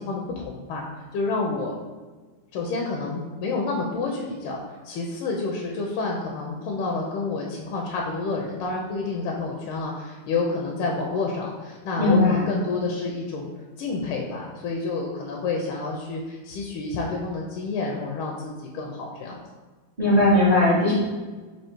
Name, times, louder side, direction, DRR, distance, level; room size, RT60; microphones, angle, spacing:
voice 1, 0.0-1.7 2.5-13.5 13.8-19.4, left 3 dB, 75° left, -1 dB, 1.4 m, -29 dB
voice 2, 12.0-12.5 20.0-20.9, left 1 dB, 30° right, -9 dB, 0.8 m, -18 dB
4.5 x 2.7 x 4.4 m, 1.3 s
omnidirectional pair, 2.4 m